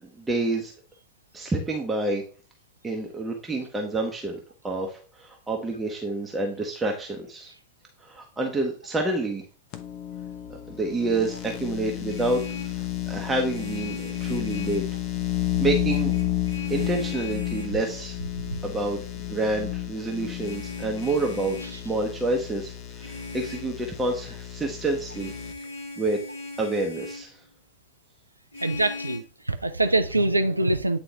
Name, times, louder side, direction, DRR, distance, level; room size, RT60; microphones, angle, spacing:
voice 1, 0.0-0.7 1.3-2.2 2.8-7.5 8.0-9.4 10.7-12.4 12.7-14.8 15.6-16.2 16.7-18.2 18.6-25.3 26.0-26.2 26.6-27.4, right 2 dB, 10° right, 1.1 m, -28 dB
sound 1, 9.7-25.5, left 13 dB, 40° left, 0.9 m, -32 dB
Vehicle horn car horn honking, 12.1-12.8 13.5-14.9 15.8-17.8 20.4-21.8 23.0-23.7 25.1-27.3 28.5-29.2, left 3 dB, 75° left, 2.6 m, -39 dB
voice 2, 18.3-18.6 28.6-31.0, right 2 dB, 85° right, 0.5 m, -24 dB
8.9 x 4.0 x 3.4 m
figure-of-eight pair, 90°, 0 cm